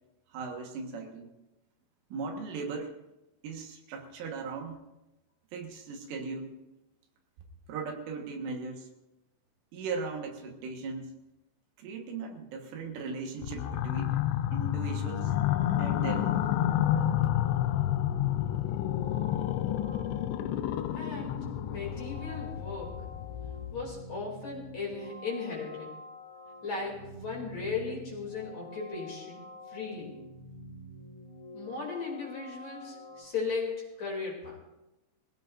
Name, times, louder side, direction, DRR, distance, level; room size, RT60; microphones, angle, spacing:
voice 1, 0.3-1.4 2.1-2.9 3.4-4.8 5.5-6.6 7.7-8.9 9.7-11.1 11.8-14.2 14.5-15.3 15.8-16.5 17.2-17.3, right 4 dB, 75° right, 2 dB, 3.9 m, -38 dB
sound 1, 13.4-23.9, left 12 dB, 85° left, 2.5 m, -30 dB
sound 2, 14.9-33.2, left 1 dB, 15° left, 4.5 m, -47 dB
voice 2, 20.9-23.1 23.7-25.9 26.6-29.4 29.7-30.1 31.5-34.6, left 4 dB, 40° left, -3 dB, 3.5 m, -37 dB
23.5 x 16.5 x 2.6 m, 0.97 s
omnidirectional pair, 5.7 m